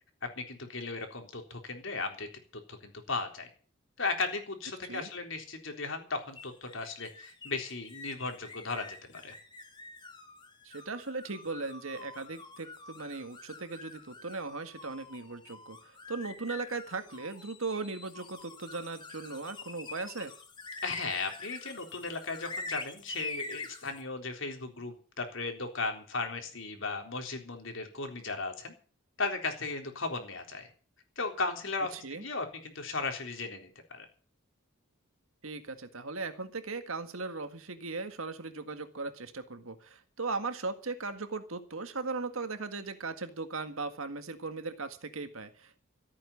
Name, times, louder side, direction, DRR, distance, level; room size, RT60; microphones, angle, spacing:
voice 1, 0.2-2.3 2.7-3.5 4.0-9.4 20.8-28.7 29.2-30.7 31.2-34.1, left 3 dB, 65° left, 4 dB, 3.8 m, -36 dB
sound 1, 6.3-24.0, left 3 dB, 20° left, 1.8 m, -46 dB
voice 2, 10.6-20.3 31.9-32.2 35.4-45.8, right 3 dB, 80° right, 9 dB, 1.8 m, -38 dB
14.5 x 9.0 x 8.5 m, 0.41 s
head